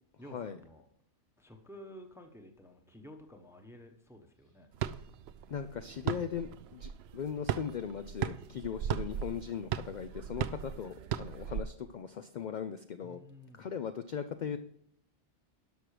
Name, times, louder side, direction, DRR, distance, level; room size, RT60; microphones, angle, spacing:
voice 1, 0.2-0.9 1.4-4.7 13.0-13.7, equal, ahead, 4 dB, 1.0 m, -52 dB
sound 1, 4.7-11.6, right 9 dB, 65° right, 0.8 m, -37 dB
voice 2, 5.5-13.2 13.5-14.6, left 7 dB, 55° left, 10 dB, 0.5 m, -39 dB
12.0 x 6.1 x 4.9 m, 0.69 s
omnidirectional pair, 1.2 m